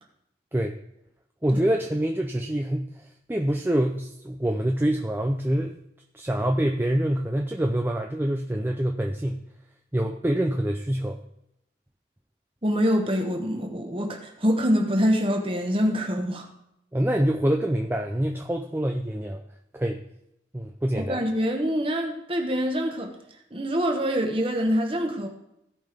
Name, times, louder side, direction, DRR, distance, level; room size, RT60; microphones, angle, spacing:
voice 1, 1.4-5.8 6.1-9.4 9.9-11.2 16.9-19.4 19.7-20.0 20.5-21.2, right 1 dB, 10° right, 3 dB, 0.4 m, -26 dB
voice 2, 12.6-16.5 20.9-23.1 23.5-25.3, equal, 30° right, 3 dB, 1.2 m, -25 dB
16.5 x 5.5 x 3.5 m, 0.81 s
head